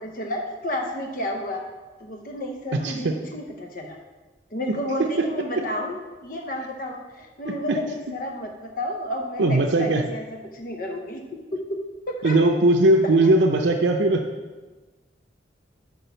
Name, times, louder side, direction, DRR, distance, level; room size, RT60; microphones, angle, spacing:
voice 1, 0.0-1.7 2.0-4.0 4.5-11.2 11.5-11.6 12.2-12.4, left 1 dB, 50° left, 2 dB, 0.8 m, -31 dB
voice 2, 2.7-3.2 4.7-5.3 7.5-7.8 9.4-10.0 12.2-14.3, right 2 dB, 85° right, 2 dB, 0.6 m, -20 dB
6.0 x 5.2 x 6.8 m, 1.2 s
head